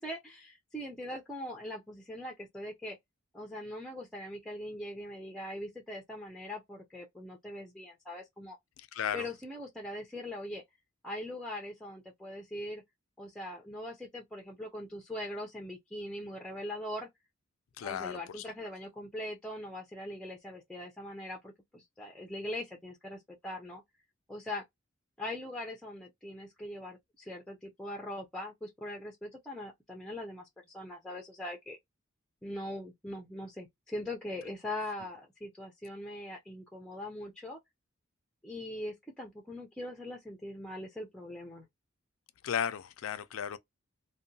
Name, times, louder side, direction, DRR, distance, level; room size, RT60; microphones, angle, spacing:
voice 1, 0.0-3.0 3.3-8.6 9.1-10.6 11.0-12.8 13.2-17.1 17.8-23.8 24.3-24.6 25.2-31.8 32.4-37.6 38.4-41.7, left 1 dB, 5° left, 0.4 m, -41 dB
voice 2, 8.9-9.3 17.8-18.4 42.4-43.6, left 8 dB, 85° left, 0.4 m, -35 dB
2.7 x 2.1 x 2.6 m
head